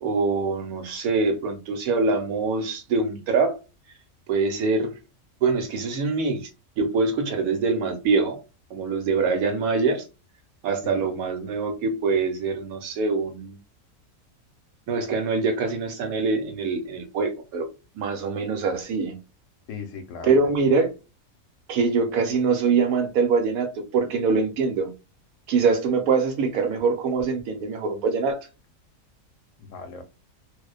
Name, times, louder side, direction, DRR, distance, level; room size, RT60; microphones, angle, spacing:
voice 1, 0.0-3.6 4.3-4.9 5.4-6.5 6.8-8.4 8.7-10.0 10.6-13.6 14.9-17.7 17.9-19.2 20.2-20.9 21.7-24.9 25.5-28.4, right 4 dB, 90° right, 1.1 m, -24 dB
voice 2, 19.7-20.8 29.6-30.0, left 5 dB, 70° left, 0.9 m, -38 dB
2.5 x 2.1 x 2.3 m
omnidirectional pair, 1.5 m